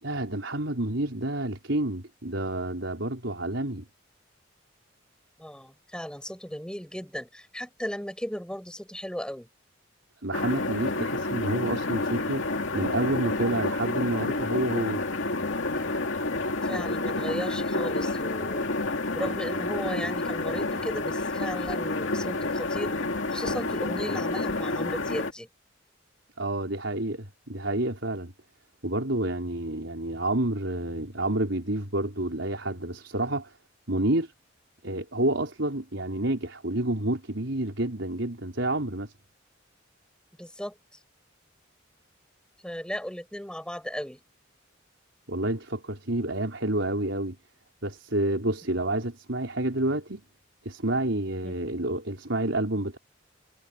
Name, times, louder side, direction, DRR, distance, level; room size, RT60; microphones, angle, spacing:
voice 1, 0.0-3.8 10.2-12.4 12.7-15.0 26.4-28.3 28.8-33.5 33.9-34.3 34.8-39.1 45.3-47.4 47.8-50.2 50.6-53.0, right 1 dB, 70° right, 4.7 m, -29 dB
voice 2, 5.4-9.5 16.6-18.7 19.1-23.0 23.3-25.5 40.4-40.8 42.6-44.2 51.4-51.6, equal, 5° left, 6.0 m, -36 dB
sound 1, 10.3-25.3, left 2 dB, 75° left, 2.2 m, -29 dB
head